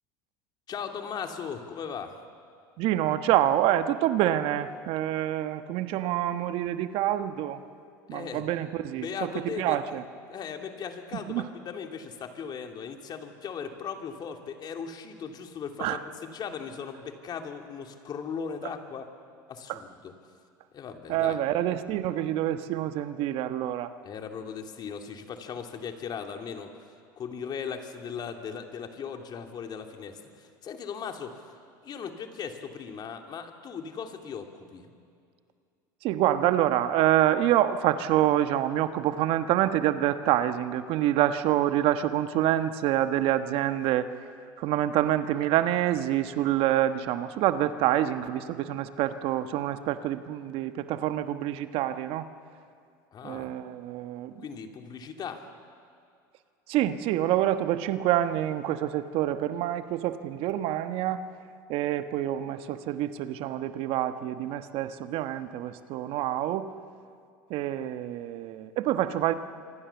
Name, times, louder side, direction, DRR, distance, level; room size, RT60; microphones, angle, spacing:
voice 1, 0.7-2.2 8.1-8.5 9.0-10.0 10.3-19.1 19.5-20.1 20.7-21.4 24.0-26.7 27.2-31.4 31.8-34.9 53.1-53.5 54.4-55.5, left 6 dB, 40° left, 4 dB, 2.8 m, -38 dB
voice 2, 2.8-7.6 8.1-9.3 9.6-10.0 11.3-11.4 15.8-16.0 19.7-19.8 21.1-23.9 36.0-44.1 44.6-52.3 53.2-54.4 56.7-61.2 61.7-66.7 67.5-69.3, right 12 dB, 55° right, 10 dB, 1.3 m, -27 dB
26.5 x 24.0 x 7.1 m, 2.3 s
hypercardioid pair, 90°, 11 cm